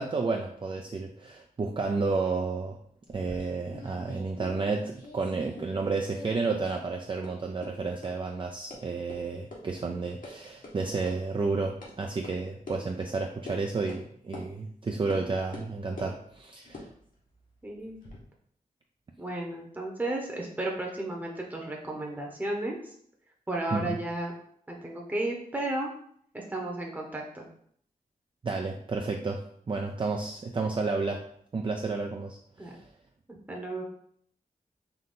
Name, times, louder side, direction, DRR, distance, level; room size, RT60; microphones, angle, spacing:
voice 1, 0.0-2.8 3.1-16.9 23.7-24.0 28.4-31.2 31.5-32.8, right 3 dB, 35° right, 3 dB, 0.4 m, -31 dB
sound 1, 3.1-5.9 6.1-6.9 7.2-7.3 7.6-7.7 8.0-8.1 8.7-8.8 9.1-9.2 9.5-9.6 9.9-10.3 10.6-10.7 11.1-11.2 11.8-11.9 12.2-12.3 12.7-12.8 13.5-13.6 13.9-14.0 14.3-14.5 15.1-15.2 15.5-16.1 16.6-18.2, left 2 dB, 65° left, 1.3 m, -45 dB
voice 2, 17.6-18.0 19.2-22.9 23.5-24.3 24.7-25.9 26.3-27.5 32.6-32.8 33.3-33.8, right 1 dB, 10° right, -1 dB, 0.9 m, -33 dB
4.0 x 2.7 x 3.7 m, 0.64 s
cardioid pair, 60°, 15 cm